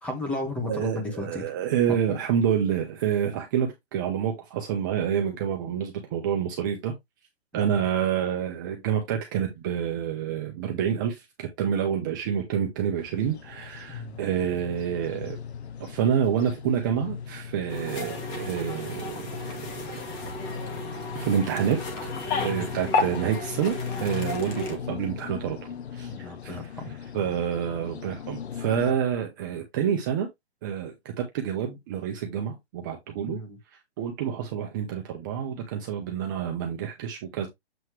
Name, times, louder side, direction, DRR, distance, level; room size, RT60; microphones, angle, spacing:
voice 1, 0.0-1.4 1.9-2.0 7.7-7.9 13.9-14.2 22.5-22.7 26.1-26.9 33.3-33.6, left 2 dB, 5° left, 1.0 m, -34 dB
voice 2, 0.7-6.9 7.5-15.4 15.8-20.0 21.1-21.8 22.4-25.6 25.9-26.1 26.4-26.5 27.1-30.3 30.6-33.4 34.0-37.5, right 8 dB, 20° right, 0.8 m, -28 dB
sound 1, 13.0-28.9, left 7 dB, 70° left, 1.0 m, -39 dB
sound 2, 17.7-24.8, left 3 dB, 20° left, 1.5 m, -32 dB
7.8 x 3.1 x 4.6 m
hypercardioid pair, 165°, 34 cm